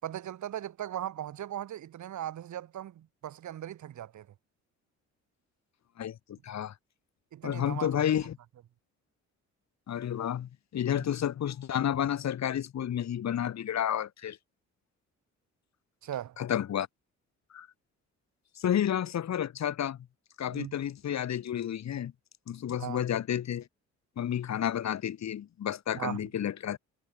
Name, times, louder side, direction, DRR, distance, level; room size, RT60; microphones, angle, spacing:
voice 1, 0.0-4.3 7.3-8.0 16.0-16.4 20.5-20.8 22.8-23.0 25.9-26.2, right 11 dB, 70° right, 7.2 m, -38 dB
voice 2, 6.0-6.7 7.4-8.4 9.9-14.4 16.4-16.9 17.5-17.7 18.6-20.0 20.4-22.1 22.5-23.7 24.2-26.8, left 10 dB, 60° left, 3.4 m, -31 dB
cardioid pair, 90°, 30 cm